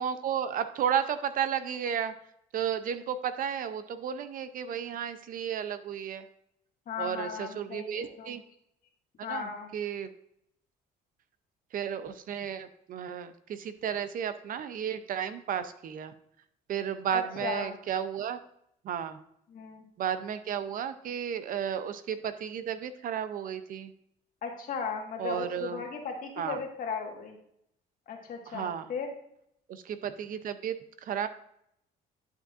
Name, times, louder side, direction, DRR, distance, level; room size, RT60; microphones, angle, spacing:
voice 1, 0.0-2.1 2.5-6.3 7.0-8.4 9.2-10.1 11.7-16.1 16.7-18.4 18.8-19.2 20.0-23.9 25.2-25.8 26.4-26.6 28.5-28.9 29.7-31.3, right 8 dB, 55° right, 11 dB, 0.6 m, -33 dB
voice 2, 6.9-8.3 9.2-9.7 17.1-17.8 19.5-19.8 24.4-27.4 28.1-29.1, left 5 dB, 55° left, 2 dB, 1.6 m, -36 dB
11.0 x 5.4 x 2.5 m, 0.74 s
cardioid pair, 110°, 17 cm